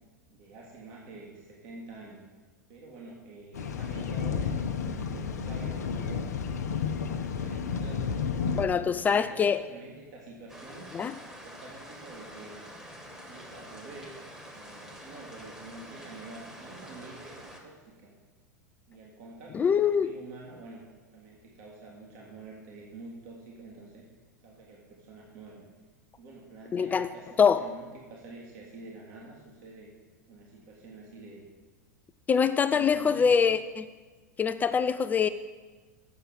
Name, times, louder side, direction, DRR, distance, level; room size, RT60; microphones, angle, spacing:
voice 1, 0.3-2.2 2.7-8.2 8.6-10.9 11.2-12.6 13.0-14.2 14.5-18.1 18.9-24.1 24.4-25.7 26.2-29.9 30.3-31.4 32.5-33.5, right 3 dB, 50° right, -2 dB, 1.9 m, -47 dB
sound 1, 3.5-8.6, left 6 dB, 65° left, 0.7 m, -31 dB
voice 2, 8.5-9.6 10.9-11.1 19.5-20.1 26.7-27.1 27.4-27.6 32.3-33.9 34.4-35.3, left 6 dB, 20° left, 12 dB, 0.3 m, -24 dB
sound 2, 10.5-17.6, equal, 5° right, 1.6 m, -47 dB
7.7 x 6.8 x 7.5 m, 1.4 s
figure-of-eight pair, 85°, 9 cm